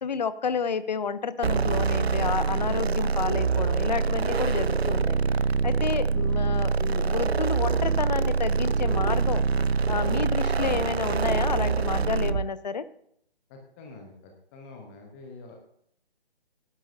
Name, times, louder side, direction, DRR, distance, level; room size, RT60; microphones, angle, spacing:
voice 1, 0.0-5.2 5.6-9.4 9.9-12.8, left 6 dB, 45° left, 15 dB, 0.7 m, -30 dB
sound 1, 1.4-12.5, right 5 dB, 85° right, 0.5 m, -25 dB
voice 2, 13.5-15.5, left 3 dB, 10° left, 2 dB, 1.0 m, -46 dB
17.5 x 12.0 x 2.7 m, 0.69 s
figure-of-eight pair, 145°, 31 cm